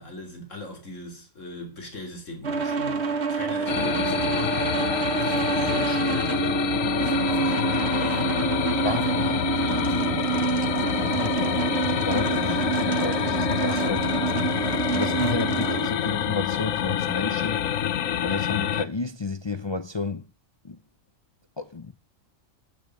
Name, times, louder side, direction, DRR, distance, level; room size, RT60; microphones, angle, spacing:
voice 1, 0.0-3.0 3.3-6.4 7.0-7.6 8.0-8.4 8.7-10.4 12.4-12.6, left 1 dB, 70° left, 3.5 m, -39 dB
sound 1, 2.4-15.9, right 5 dB, 55° right, 1.6 m, -27 dB
sound 2, 3.7-18.9, left 10 dB, 85° left, 1.2 m, -27 dB
voice 2, 11.0-11.5 11.9-14.1 14.9-17.7 18.2-20.2 20.7-20.8 21.6-21.9, left 3 dB, 45° left, 0.3 m, -31 dB
8.8 x 8.7 x 9.2 m
omnidirectional pair, 1.4 m